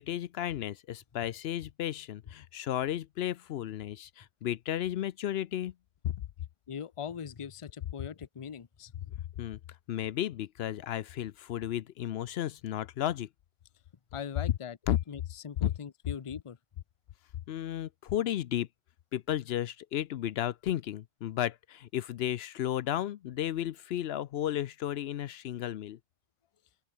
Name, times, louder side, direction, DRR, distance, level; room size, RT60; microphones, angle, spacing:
voice 1, 0.0-5.7 6.0-6.2 9.4-9.6 9.9-13.3 14.9-15.0 15.6-15.7 17.5-18.7 19.1-26.0, left 12 dB, 75° left, 0.8 m, -33 dB
voice 2, 6.7-9.2 14.1-14.8 15.1-16.6, left 7 dB, 35° left, 0.6 m, -41 dB
open air
omnidirectional pair, 1.1 m